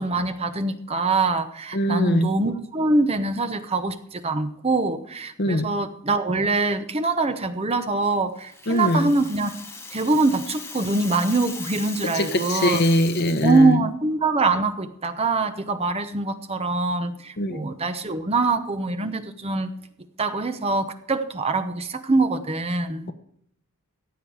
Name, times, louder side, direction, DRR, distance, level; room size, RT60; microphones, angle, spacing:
voice 1, 0.0-9.5 9.9-12.8 13.4-19.7 20.2-23.1, right 3 dB, 25° right, 0.8 m, -24 dB
voice 2, 1.7-2.3 5.4-5.7 8.7-9.1 12.1-13.8 17.4-17.6, left 1 dB, 45° left, 0.8 m, -22 dB
Rattle (instrument), 8.4-13.6, left 4 dB, 10° left, 1.0 m, -38 dB
15.5 x 8.4 x 4.8 m
head